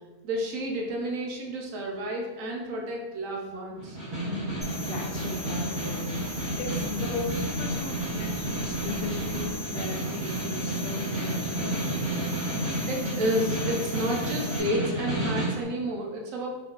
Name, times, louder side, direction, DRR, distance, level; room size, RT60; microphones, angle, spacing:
voice 1, 0.2-4.0 12.9-16.5, equal, 65° right, 0 dB, 1.0 m, -31 dB
Snare drum, 3.8-15.6, right 1 dB, 50° right, 1.9 m, -31 dB
voice 2, 4.3-11.8, left 4 dB, 75° left, 2 dB, 0.5 m, -37 dB
sound 1, 4.4-9.6, right 1 dB, 85° right, 1.2 m, -44 dB
sound 2, 4.6-14.6, left 2 dB, 15° left, 0.3 m, -40 dB
3.6 x 2.9 x 2.3 m, 1.2 s
omnidirectional pair, 1.6 m